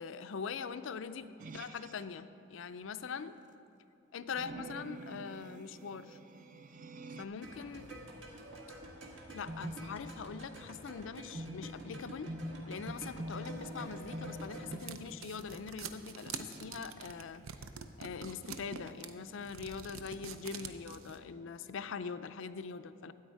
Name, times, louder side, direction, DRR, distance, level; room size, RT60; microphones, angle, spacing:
voice 1, 0.0-3.4 4.1-6.2 7.2-7.9 9.3-12.3 12.7-17.4 18.0-23.1, left 5 dB, 65° left, 12 dB, 0.4 m, -42 dB
sound 1, 1.4-2.0 4.3-7.2, right 3 dB, 40° right, 0.4 m, -48 dB
sound 2, 7.4-14.8, equal, 65° right, 1.6 m, -44 dB
sound 3, 13.9-21.2, right 6 dB, 90° right, 0.6 m, -46 dB
13.0 x 8.7 x 4.7 m, 2.6 s
head